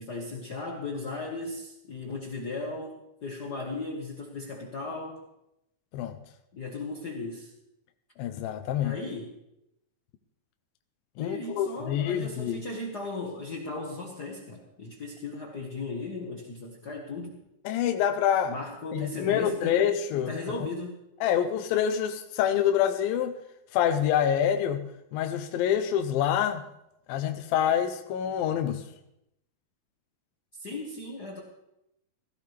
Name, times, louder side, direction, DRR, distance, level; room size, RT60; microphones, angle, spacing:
voice 1, 0.0-5.2 6.5-7.5 8.8-9.3 11.2-17.4 18.5-19.8 20.1-21.0 30.5-31.4, left 3 dB, 65° left, -1 dB, 1.0 m, -36 dB
voice 2, 8.2-8.9 11.2-12.6 17.7-18.6 18.9-20.6 21.2-23.3 23.7-26.6 27.1-28.8, left 9 dB, 80° left, 7 dB, 2.5 m, -26 dB
17.0 x 15.5 x 3.3 m, 0.83 s
omnidirectional pair, 4.2 m